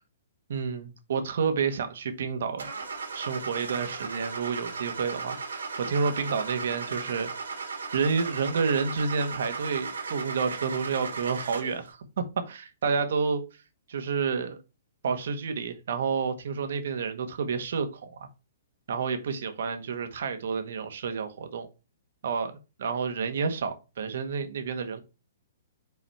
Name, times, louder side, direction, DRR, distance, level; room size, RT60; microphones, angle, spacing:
voice 1, 0.5-2.7 3.1-7.3 7.9-13.6 13.9-14.6 15.0-18.3 18.9-21.7 22.2-25.0, right 5 dB, 65° right, 1.6 m, -30 dB
Car / Engine starting, 2.6-11.9, right 4 dB, 85° right, 2.6 m, -36 dB
5.8 x 4.1 x 4.3 m
hypercardioid pair, 140°, 0 cm